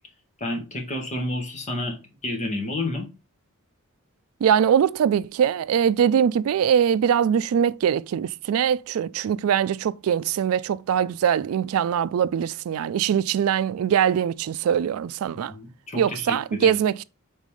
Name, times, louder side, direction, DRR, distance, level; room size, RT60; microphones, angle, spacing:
voice 1, 0.4-2.0 2.2-3.1 15.5-16.8, left 1 dB, 35° left, 1.7 m, -30 dB
voice 2, 4.4-15.5 16.0-17.0, right 8 dB, 75° right, 0.3 m, -22 dB
5.4 x 4.1 x 4.8 m
head